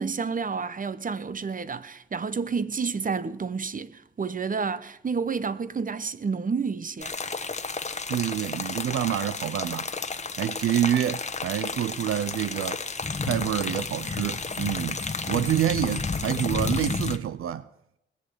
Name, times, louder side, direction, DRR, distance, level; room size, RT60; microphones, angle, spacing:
voice 1, 0.0-7.1, right 5 dB, 40° right, 1.0 m, -30 dB
sound 1, 7.0-17.2, left 4 dB, 30° left, 1.1 m, -31 dB
voice 2, 8.1-9.9 10.4-12.8 13.2-15.0 15.3-17.7, right 11 dB, 80° right, 0.5 m, -27 dB
20.0 x 7.8 x 8.0 m
cardioid pair, 65°, 21 cm